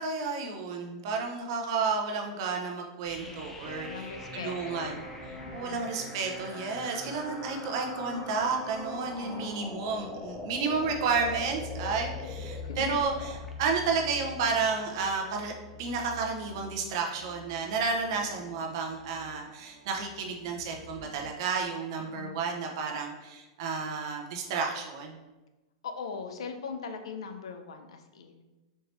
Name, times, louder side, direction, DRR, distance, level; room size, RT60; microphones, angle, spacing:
voice 1, 0.0-3.9 4.3-5.0 5.5-13.3 13.6-15.5 15.8-25.2, right 4 dB, 60° right, 2 dB, 0.8 m, -31 dB
sound 1, 3.0-13.5, left 1 dB, 15° left, 0.6 m, -44 dB
voice 2, 3.2-5.0 5.3-5.8 9.1-9.9 12.6-13.0 22.1-22.4 25.8-28.4, left 5 dB, 80° left, 7 dB, 0.5 m, -41 dB
sound 2, 3.6-9.5, equal, 35° left, 1.2 m, -44 dB
sound 3, 10.7-21.3, left 6 dB, 25° right, 0.6 m, -46 dB
4.3 x 2.9 x 3.2 m, 1.1 s
hypercardioid pair, 110°, 3 cm